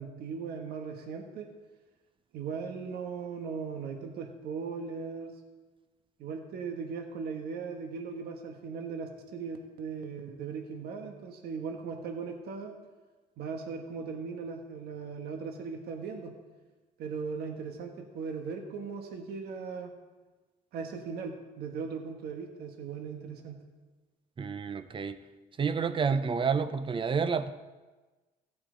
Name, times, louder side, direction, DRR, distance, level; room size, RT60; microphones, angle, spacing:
voice 1, 0.0-1.5 2.3-5.3 6.2-12.7 13.4-16.4 17.0-19.9 20.7-23.6, right 5 dB, 70° right, 4 dB, 1.3 m, -38 dB
voice 2, 24.4-25.2 25.6-27.5, right 5 dB, 30° right, 12 dB, 0.7 m, -29 dB
15.5 x 8.5 x 3.9 m, 1.2 s
cardioid pair, 110°, 17 cm